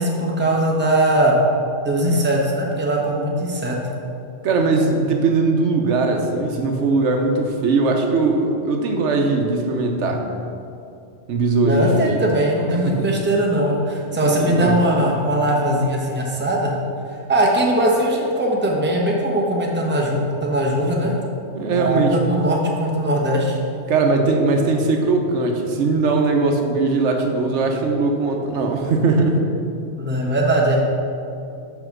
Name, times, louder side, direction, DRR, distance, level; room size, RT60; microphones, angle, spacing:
voice 1, 0.0-1.4 1.8-3.8 11.6-16.7 17.1-21.1 21.7-23.6 30.0-30.8, right 1 dB, 10° right, -2 dB, 0.8 m, -20 dB
voice 2, 4.4-10.2 11.3-12.2 12.8-13.1 14.2-14.8 21.5-22.2 23.9-29.4, right 3 dB, 75° right, 3 dB, 1.0 m, -20 dB
5.6 x 5.2 x 6.0 m, 2.6 s
omnidirectional pair, 1.2 m